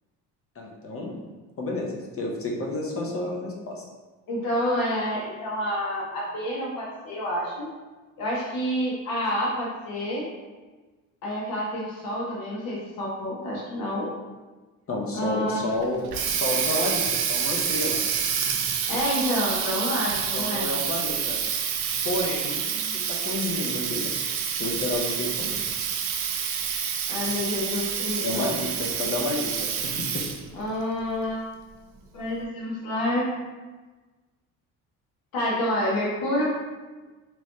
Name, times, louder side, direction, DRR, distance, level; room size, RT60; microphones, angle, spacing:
voice 1, 0.6-1.2 1.6-3.8 14.9-18.0 20.3-21.4 22.0-22.8 23.1-24.1 24.6-25.6 28.2-30.2, left 2 dB, 40° left, -1 dB, 0.7 m, -30 dB
voice 2, 4.3-7.7 8.2-10.3 11.2-14.1 15.1-15.6 18.9-20.7 27.1-28.5 30.5-31.4 32.1-33.3 35.3-36.4, left 1 dB, 65° left, -5 dB, 1.3 m, -28 dB
Water tap faucet, 15.8-30.5, right 7 dB, 75° right, 0.5 m, -28 dB
3.1 x 3.0 x 2.6 m, 1.3 s
supercardioid pair, 75°, 37 cm